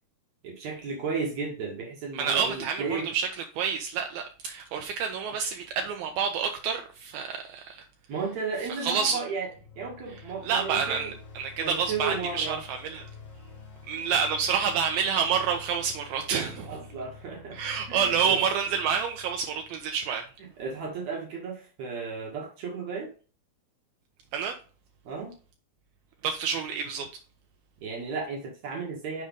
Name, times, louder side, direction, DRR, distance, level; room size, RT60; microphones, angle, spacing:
voice 1, 0.4-3.1 8.1-9.5 9.8-11.1 11.6-12.6 16.7-17.6 17.9-18.4 20.6-23.1 25.1-25.3 27.8-29.2, right 4 dB, 65° right, 1.8 m, -34 dB
voice 2, 2.1-3.3 3.6-7.8 8.7-9.2 10.4-13.0 13.9-16.8 17.5-20.3 24.3-24.6 26.2-27.1, right 7 dB, 85° right, 2.1 m, -28 dB
sound 1, 9.3-20.3, left 4 dB, 70° left, 1.0 m, -48 dB
6.6 x 5.0 x 3.6 m
omnidirectional pair, 5.0 m